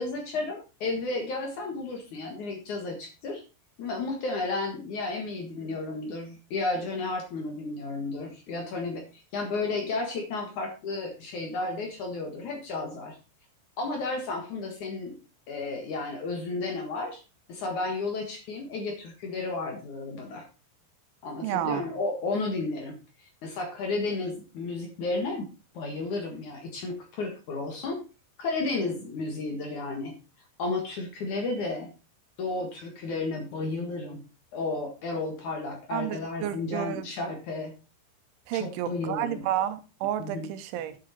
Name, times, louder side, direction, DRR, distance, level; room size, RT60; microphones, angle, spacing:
voice 1, 0.0-3.4 3.8-13.2 13.8-15.2 15.5-17.2 17.5-20.5 21.2-25.5 25.7-28.0 28.4-30.1 30.6-31.9 32.4-34.2 34.5-37.7 38.5-39.4 40.2-40.5, left 3 dB, 55° left, 2.5 m, -32 dB
voice 2, 21.4-21.8 35.9-37.1 38.5-41.0, right 11 dB, 90° right, 3.4 m, -31 dB
9.9 x 7.7 x 4.2 m
omnidirectional pair, 5.3 m